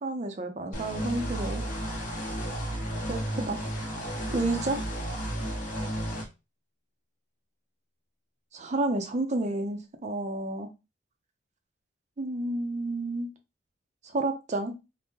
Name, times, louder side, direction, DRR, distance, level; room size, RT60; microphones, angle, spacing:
voice 1, 0.0-1.6 3.1-3.6 4.3-4.9 8.5-10.7 12.2-13.3 14.1-14.7, right 2 dB, 40° right, 5 dB, 0.6 m, -30 dB
sound 1, 0.7-6.2, equal, 45° left, 1.0 m, -33 dB
3.5 x 2.1 x 2.8 m, 0.26 s
head